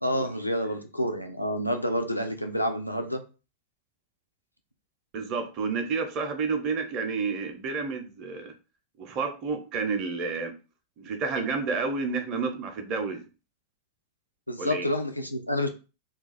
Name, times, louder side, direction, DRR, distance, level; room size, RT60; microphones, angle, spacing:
voice 1, 0.0-3.2 14.5-15.7, left 1 dB, 85° left, 6 dB, 0.4 m, -28 dB
voice 2, 5.1-8.5 9.0-10.6 11.0-13.3 14.6-14.9, right 4 dB, 35° right, 4 dB, 0.6 m, -30 dB
2.4 x 2.3 x 3.9 m, 0.32 s
figure-of-eight pair, 90°, 0 cm